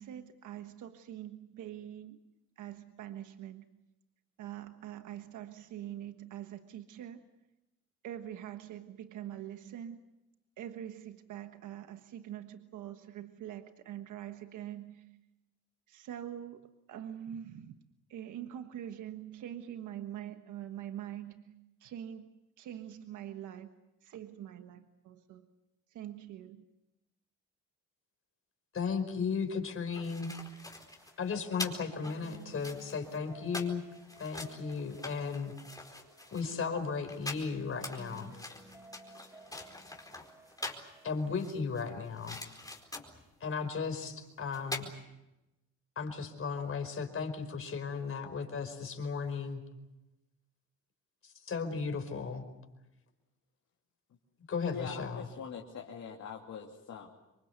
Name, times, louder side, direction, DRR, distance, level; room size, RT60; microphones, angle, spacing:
voice 1, 0.0-2.2 2.6-3.7 4.4-7.2 8.0-10.0 10.6-15.1 15.9-16.6 16.9-17.7 18.1-21.5 21.8-22.3 22.6-23.7 24.0-25.5 25.9-26.6, right 11 dB, 80° right, 7 dB, 1.4 m, -44 dB
voice 2, 28.7-30.3 31.2-33.8 34.2-35.5 36.3-38.4 41.0-42.4 43.4-44.9 45.9-49.6 51.2-52.4 54.5-55.3, left 5 dB, 45° left, 6 dB, 4.9 m, -35 dB
sound 1, 29.7-40.9 41.3-43.3 44.2-44.3 44.5-44.9, left 2 dB, 10° left, 4.5 m, -44 dB
sound 2, 30.8-41.5, right 1 dB, 10° right, 6.0 m, -57 dB
voice 3, 54.7-57.1, left 7 dB, 60° left, -1 dB, 2.9 m, -43 dB
26.5 x 23.5 x 8.1 m, 0.96 s
cardioid pair, 90°, 30 cm